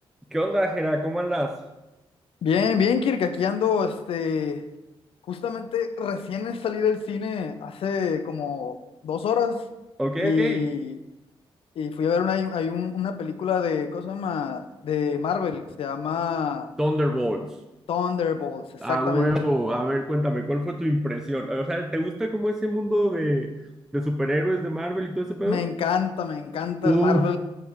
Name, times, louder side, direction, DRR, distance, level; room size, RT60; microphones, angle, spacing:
voice 1, 0.3-1.6 10.0-10.7 16.8-17.6 18.8-23.7 23.9-25.7 26.8-27.3, equal, 5° right, 5 dB, 0.3 m, -25 dB
voice 2, 2.4-4.6 5.3-8.8 9.0-9.7 10.2-10.9 11.8-16.7 17.9-18.6 18.9-19.3 25.4-27.4, left 6 dB, 70° left, 8 dB, 0.5 m, -26 dB
7.2 x 3.3 x 4.7 m, 0.98 s
wide cardioid pair, 145°, 10 cm